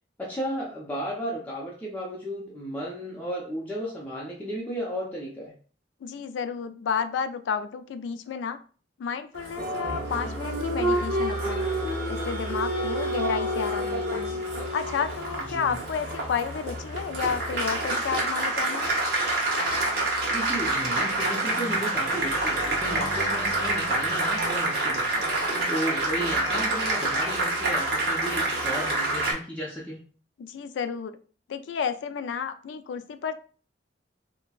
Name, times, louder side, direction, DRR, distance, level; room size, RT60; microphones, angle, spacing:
voice 1, 0.2-5.5 15.5-15.8 20.3-25.3 25.7-30.0, equal, 10° left, -5 dB, 0.6 m, -33 dB
voice 2, 6.0-8.6 9.0-11.7 12.1-14.4 14.7-19.0 30.4-31.2 31.5-33.3, left 6 dB, 90° left, 10 dB, 0.3 m, -31 dB
Applause, 9.3-29.3, right 2 dB, 60° right, 0.9 m, -27 dB
4.0 x 2.1 x 2.3 m, 0.40 s
head